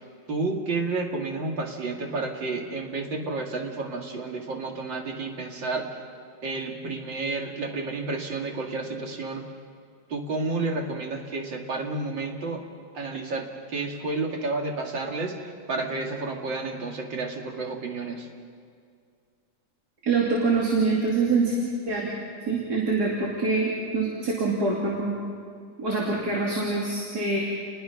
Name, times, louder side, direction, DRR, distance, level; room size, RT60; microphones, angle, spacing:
voice 1, 0.3-5.9 6.4-9.4 10.1-12.6 12.9-18.3, right 3 dB, 90° right, 1 dB, 3.0 m, -31 dB
voice 2, 20.0-21.6 21.9-22.1 22.5-25.1 25.8-27.4, right 3 dB, 60° right, -4 dB, 3.5 m, -25 dB
30.0 x 20.5 x 5.9 m, 2.2 s
omnidirectional pair, 2.0 m